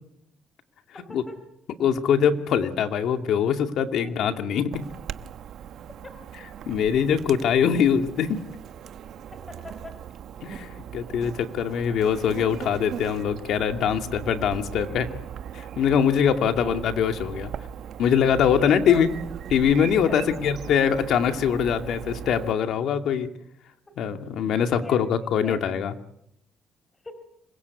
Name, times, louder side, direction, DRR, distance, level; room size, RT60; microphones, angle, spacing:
voice 1, 0.9-1.5 4.0-4.5 6.0-6.2 9.3-10.0 16.5-16.8 18.5-19.1 20.0-20.5 23.9-24.0 24.8-25.0 25.4-25.7 27.0-27.1, left 2 dB, 20° left, 9 dB, 4.7 m, -40 dB
voice 2, 1.8-4.9 6.7-8.4 10.4-15.1 15.5-17.5 18.0-19.1 19.5-23.3 24.0-25.9, left 8 dB, 75° left, 6 dB, 2.3 m, -23 dB
Chirp tweet / Buzz, 4.7-22.5, right 9 dB, 75° right, 1.2 m, -39 dB
26.0 x 21.5 x 8.3 m, 0.80 s
cardioid pair, 90°, 0 cm